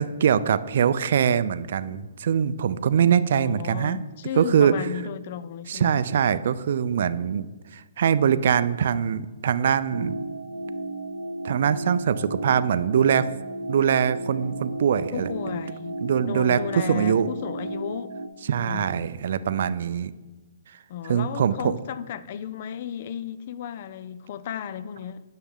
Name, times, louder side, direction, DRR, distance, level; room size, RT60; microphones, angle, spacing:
voice 1, 0.0-4.0 4.4-4.9 5.7-7.5 7.7-10.2 11.4-13.3 13.7-15.3 16.0-17.3 18.5-20.1 21.1-21.7, right 8 dB, 55° right, 0.4 m, -23 dB
voice 2, 3.3-6.0 15.1-16.0 16.3-18.1 18.6-19.1 20.9-25.2, left 9 dB, 45° left, 0.5 m, -34 dB
sound 1, 9.9-18.3, right 2 dB, 90° right, 0.8 m, -34 dB
9.6 x 6.5 x 3.7 m
figure-of-eight pair, 125°, 0 cm